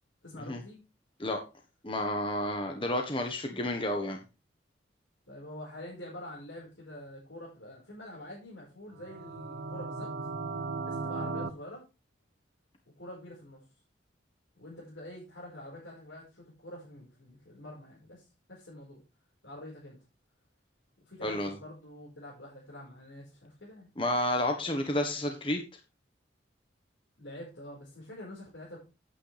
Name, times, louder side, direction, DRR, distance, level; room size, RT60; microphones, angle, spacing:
voice 1, 0.2-0.8 5.3-10.1 10.8-11.8 13.0-13.6 14.6-19.0 19.4-20.0 21.0-23.9 27.2-28.8, left 1 dB, 85° left, -5 dB, 5.0 m, -46 dB
voice 2, 1.8-4.2 21.2-21.5 24.0-25.6, left 1 dB, 30° left, 4 dB, 1.3 m, -30 dB
sound 1, 8.9-11.5, right 3 dB, 80° right, 1.1 m, -36 dB
10.5 x 8.9 x 3.5 m, 0.28 s
head